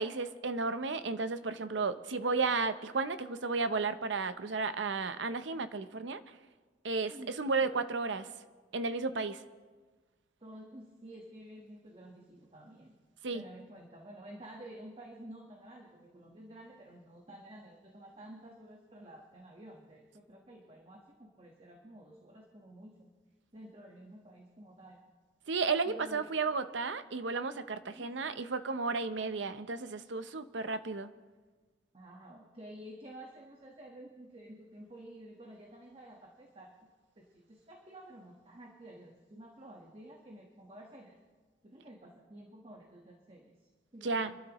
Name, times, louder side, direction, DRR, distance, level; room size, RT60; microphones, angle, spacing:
voice 1, 0.0-6.2 6.8-7.1 7.4-8.3 8.7-9.4 13.2-13.4 25.5-31.1 44.0-44.3, right 4 dB, 80° right, 11 dB, 0.7 m, -33 dB
voice 2, 10.4-13.0 13.3-23.1 23.5-25.0 25.8-26.4 27.9-28.1 31.9-41.2 41.6-44.4, right 1 dB, 30° right, 0 dB, 1.3 m, -51 dB
26.0 x 12.0 x 3.0 m, 1.4 s
head